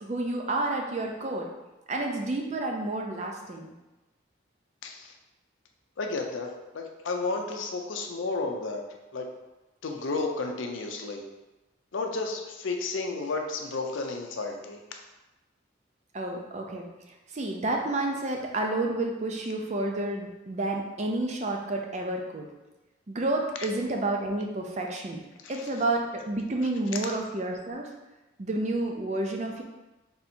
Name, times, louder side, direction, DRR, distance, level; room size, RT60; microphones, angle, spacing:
voice 1, 0.0-1.5 1.9-3.7 16.1-16.9 17.3-22.5 23.1-25.2 25.5-27.9 28.4-29.6, right 2 dB, 35° right, 2 dB, 0.4 m, -30 dB
voice 2, 4.8-5.1 6.0-8.8 9.1-9.3 9.8-11.3 11.9-14.8 25.4-25.7, left 3 dB, 75° left, 3 dB, 0.5 m, -32 dB
3.5 x 2.7 x 4.2 m, 1.1 s
head